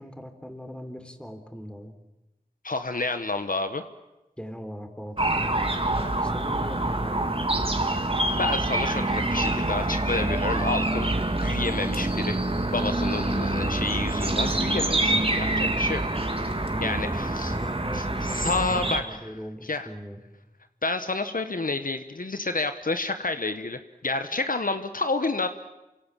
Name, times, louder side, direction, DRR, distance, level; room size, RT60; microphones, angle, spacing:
voice 1, 0.0-2.0 4.4-8.1 13.2-13.4 16.7-20.2, equal, 5° left, 7 dB, 3.9 m, -40 dB
voice 2, 2.6-3.8 8.4-12.4 12.7-16.0 16.8-17.5 17.9-19.3 19.6-19.9 20.8-25.5, left 3 dB, 65° left, 9 dB, 1.3 m, -29 dB
sound 1, 5.2-19.0, right 2 dB, 35° right, 2.8 m, -26 dB
28.0 x 25.5 x 7.5 m, 0.99 s
wide cardioid pair, 40°, 16 cm